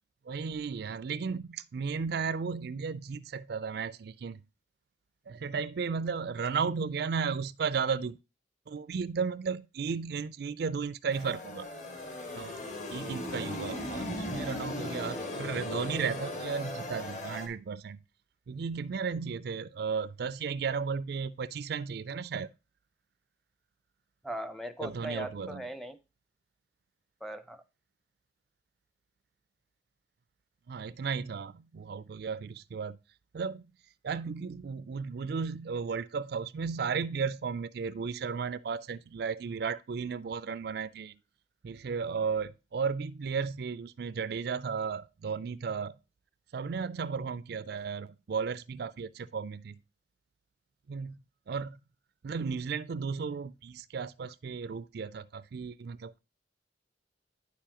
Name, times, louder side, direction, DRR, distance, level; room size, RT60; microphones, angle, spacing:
voice 1, 0.3-4.4 5.3-8.2 8.7-11.7 12.3-12.5 12.9-18.0 18.5-22.5 24.8-25.6 30.7-33.0 33.3-33.7 34.0-41.2 41.6-46.0 46.5-49.8 50.9-51.2 51.5-51.8 52.2-56.2, right 5 dB, 55° right, 0.4 m, -34 dB
sound 1, 11.1-17.5, left 1 dB, 40° left, 1.7 m, -38 dB
voice 2, 24.2-26.0 27.2-27.6, equal, ahead, 0.6 m, -39 dB
9.5 x 6.8 x 2.9 m
head